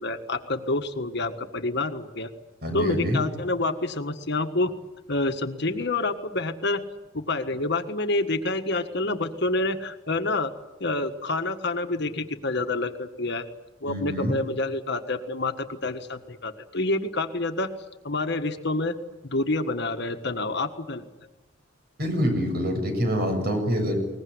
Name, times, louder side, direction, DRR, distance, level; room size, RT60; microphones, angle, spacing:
voice 1, 0.0-2.3 2.7-4.7 5.1-6.8 7.1-10.5 10.8-13.5 13.8-17.7 18.0-18.9 19.2-21.0, left 2 dB, 55° left, 7 dB, 1.6 m, -28 dB
voice 2, 2.6-3.2 13.9-14.4 22.0-24.0, equal, 50° right, 5 dB, 7.2 m, -26 dB
22.0 x 20.0 x 9.6 m, 1.0 s
head